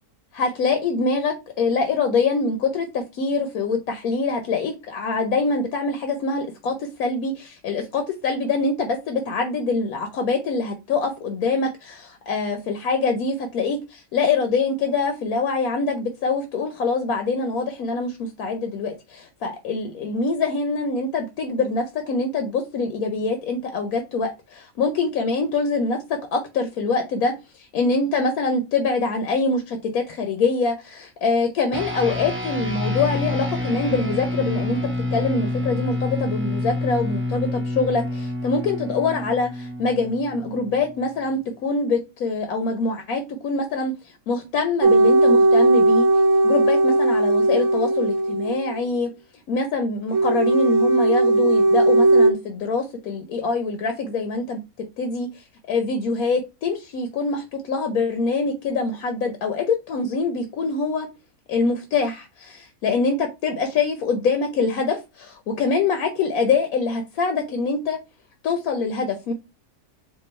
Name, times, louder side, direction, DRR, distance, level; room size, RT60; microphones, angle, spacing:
voice 1, 0.3-34.8 35.1-46.1 46.4-49.1 49.5-54.6 55.0-61.1 61.5-68.0 68.4-69.3, left 4 dB, 75° left, 1.2 m, -24 dB
sound 1, 31.7-41.4, left 2 dB, 10° right, 0.7 m, -28 dB
sound 2, 44.8-48.8 50.1-52.3, right 2 dB, 60° right, 1.1 m, -17 dB
4.5 x 2.7 x 4.2 m
omnidirectional pair, 1.5 m